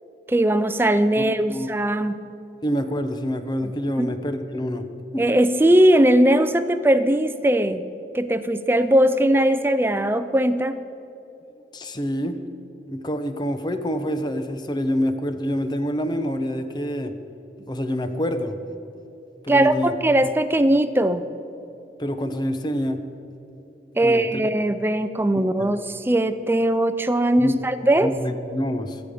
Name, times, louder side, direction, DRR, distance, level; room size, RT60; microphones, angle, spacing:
voice 1, 0.3-2.2 3.6-3.7 4.0-4.1 5.2-7.8 8.1-10.8 19.5-21.2 24.0-28.1, right 1 dB, 10° right, 11 dB, 0.4 m, -19 dB
voice 2, 1.2-1.7 2.6-4.9 5.1-5.3 11.7-12.4 12.9-17.1 17.7-18.5 19.4-19.9 22.0-23.0 24.0-24.4 25.4-25.7 27.4-29.0, equal, 25° left, 9 dB, 0.7 m, -27 dB
23.5 x 8.4 x 5.0 m, 2.9 s
head